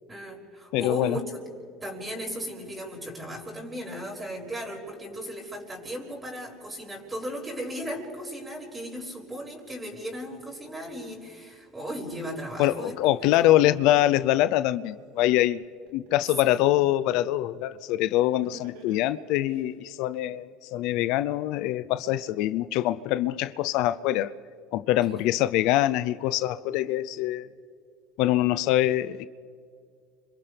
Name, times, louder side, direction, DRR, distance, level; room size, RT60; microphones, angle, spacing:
voice 1, 0.1-1.4 1.8-13.7 16.4-16.7 25.1-25.3, equal, 20° right, 5.9 m, -36 dB
voice 2, 0.7-1.2 12.6-15.6 15.9-24.3 24.7-27.5 28.2-29.3, left 14 dB, 70° left, 0.6 m, -24 dB
Laughter, 14.7-14.8 15.2-16.6 18.4-19.6, right 5 dB, 80° right, 3.5 m, -48 dB
30.0 x 26.0 x 3.4 m
supercardioid pair, 95°, 0 cm